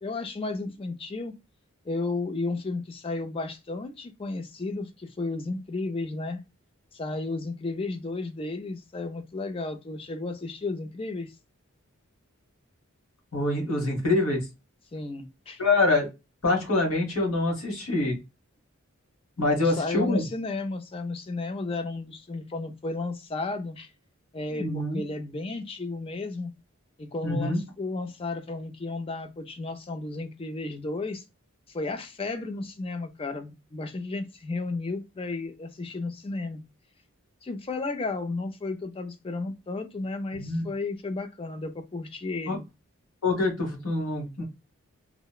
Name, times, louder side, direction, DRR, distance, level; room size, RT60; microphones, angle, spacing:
voice 1, 0.0-1.3 1.9-6.4 6.9-11.3 14.9-15.6 19.6-23.9 24.3-26.5 27.0-31.2 31.7-36.6 37.4-42.7, left 3 dB, 25° left, 0.4 m, -33 dB
voice 2, 13.3-14.4 15.6-16.1 16.4-18.2 19.4-20.2 24.5-25.0 27.2-27.6 40.3-40.7 42.5-42.6 43.2-44.4, left 2 dB, 85° left, 1.2 m, -25 dB
2.8 x 2.1 x 2.3 m
head